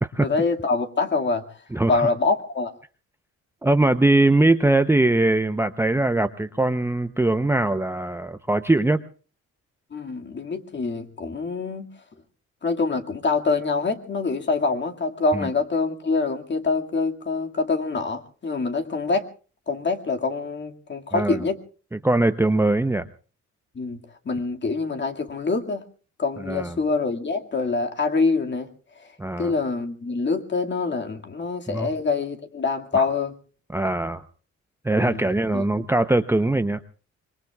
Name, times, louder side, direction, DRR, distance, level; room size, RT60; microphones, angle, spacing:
voice 1, 0.2-1.4 1.9-2.7 9.9-11.9 12.6-19.3 19.7-21.6 23.8-24.0 24.2-25.9 26.2-28.7 29.4-33.3 35.0-35.6, left 4 dB, 35° left, 4 dB, 2.2 m, -25 dB
voice 2, 1.7-2.1 3.6-9.0 15.3-15.5 21.1-21.4 21.9-23.1 26.5-26.7 29.2-29.5 31.7-31.9 32.9-33.1 33.7-34.2 34.8-36.8, right 2 dB, 10° right, 9 dB, 0.7 m, -21 dB
25.5 x 22.0 x 2.4 m, 0.38 s
cardioid pair, 90°, 30 cm